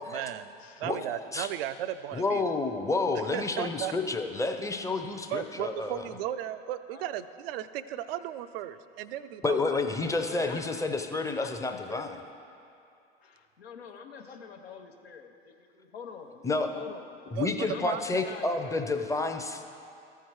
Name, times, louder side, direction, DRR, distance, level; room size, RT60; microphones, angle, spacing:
voice 1, 0.0-2.5 3.3-3.9 5.3-9.8 17.3-17.5 17.9-18.0, right 12 dB, 70° right, 13 dB, 0.5 m, -35 dB
voice 2, 0.8-1.5 2.1-6.1 9.4-12.2 16.4-16.7 17.3-19.6, left 3 dB, 10° left, 6 dB, 0.6 m, -30 dB
voice 3, 9.4-10.8 11.4-12.0 13.2-17.2 17.7-19.1, left 6 dB, 85° left, 4 dB, 0.8 m, -45 dB
14.0 x 4.6 x 4.6 m, 2.5 s
hypercardioid pair, 85°, 30 cm